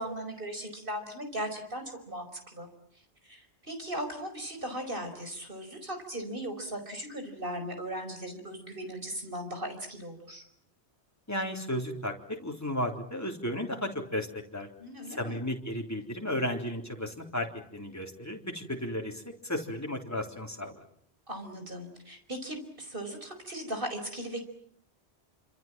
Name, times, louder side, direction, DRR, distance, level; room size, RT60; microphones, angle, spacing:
voice 1, 0.0-2.7 3.2-10.4 14.8-15.4 21.3-24.4, right 1 dB, 50° right, 6 dB, 5.4 m, -38 dB
voice 2, 11.3-14.7 15.1-20.8, left 1 dB, 15° left, 2 dB, 3.7 m, -34 dB
28.0 x 26.5 x 7.5 m, 0.63 s
omnidirectional pair, 1.1 m